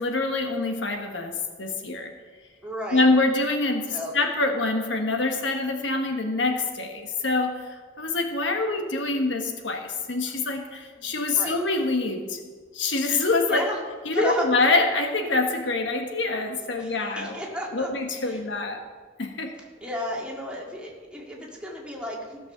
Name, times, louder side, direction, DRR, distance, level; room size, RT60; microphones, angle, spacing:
voice 1, 0.0-2.1 2.9-12.4 12.7-13.6 14.0-17.4 17.7-18.8 19.2-19.6, left 3 dB, 65° left, 4 dB, 1.2 m, -25 dB
voice 2, 2.6-3.0 3.9-4.1 11.0-11.1 11.4-11.6 13.5-13.8 14.1-14.5 16.8-17.9 18.2-18.4 19.8-22.4, equal, 5° right, -3 dB, 2.1 m, -32 dB
15.5 x 6.2 x 6.7 m, 1.5 s
head